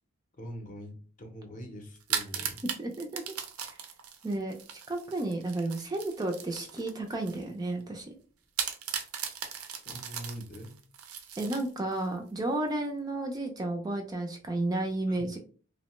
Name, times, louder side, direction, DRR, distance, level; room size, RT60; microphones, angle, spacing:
voice 1, 0.4-2.6 9.8-10.8 15.1-15.3, equal, 35° left, 3 dB, 0.6 m, -43 dB
sound 1, 2.0-7.4 7.8-7.9 8.6-12.1, right 8 dB, 75° right, 0.5 m, -38 dB
voice 2, 2.8-3.2 4.2-4.6 4.9-8.1 11.4-15.4, right 2 dB, 20° right, 3 dB, 0.3 m, -32 dB
2.8 x 2.1 x 3.0 m, 0.40 s
head